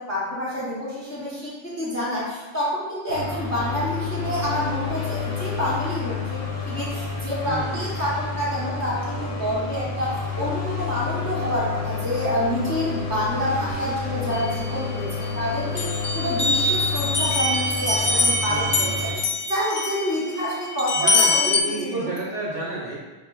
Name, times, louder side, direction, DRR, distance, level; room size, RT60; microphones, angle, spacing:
voice 1, 0.0-22.1, equal, 15° left, -9 dB, 0.6 m, -28 dB
sound 1, 3.1-19.1, left 5 dB, 85° left, 1.0 m, -30 dB
voice 2, 7.4-8.1 18.4-19.2 21.0-22.9, right 2 dB, 50° right, -7 dB, 0.7 m, -32 dB
sound 2, 14.3-15.4 15.8-21.6, left 2 dB, 60° left, 0.5 m, -24 dB
4.6 x 2.4 x 2.3 m, 1.2 s
omnidirectional pair, 1.2 m